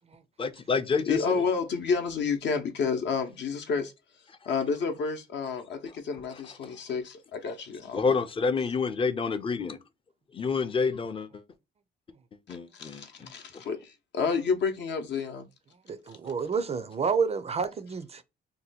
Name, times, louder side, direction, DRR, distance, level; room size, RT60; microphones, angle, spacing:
voice 1, 0.4-1.4 7.9-9.8 10.3-11.4 12.5-13.3, left 5 dB, 25° left, 0.5 m, -28 dB
voice 2, 1.1-3.9 4.5-8.0 12.7-15.5, left 5 dB, 65° left, 0.7 m, -30 dB
voice 3, 15.9-18.2, right 5 dB, 30° right, 0.4 m, -29 dB
2.7 x 2.2 x 4.0 m
cardioid pair, 90°, 20 cm